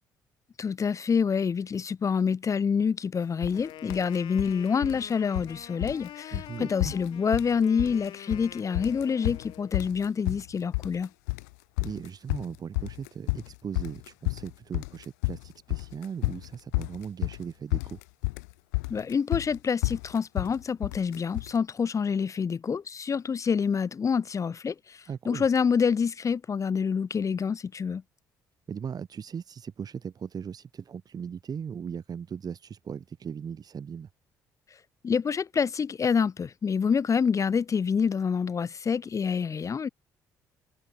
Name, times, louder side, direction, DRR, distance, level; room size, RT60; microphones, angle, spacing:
voice 1, 0.6-11.1 18.9-28.0 35.0-39.9, left 6 dB, 40° left, 0.7 m, -27 dB
sound 1, 3.4-3.6 3.9-4.5 4.8-5.5 5.8-6.1 6.3-6.5 6.8-7.5 7.8-8.5 8.7-21.6, left 28 dB, 85° left, 1.4 m, -31 dB
Wind instrument woodwind instrument, 3.5-9.8, left 13 dB, 65° left, 6.1 m, -46 dB
voice 2, 6.3-6.9 11.8-18.0 25.1-25.5 28.7-34.1, right 7 dB, 50° right, 4.0 m, -38 dB
hypercardioid pair, 55°, 9 cm